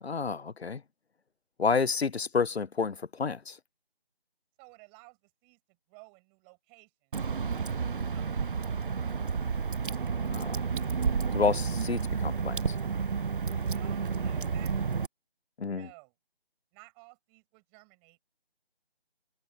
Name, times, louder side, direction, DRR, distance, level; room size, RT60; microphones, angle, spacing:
voice 1, 0.0-0.8 1.6-3.6 10.3-10.5 11.3-12.8 15.6-15.9, left 5 dB, 85° left, 0.9 m, -30 dB
voice 2, 4.6-5.6 5.9-7.2 13.6-15.0 15.7-16.1 16.7-18.3, right 40 dB or more, 10° right, 6.9 m, -56 dB
Water / Drip, 7.1-15.1, right 5 dB, 60° right, 0.5 m, -31 dB
figure-of-eight pair, 170°, 31 cm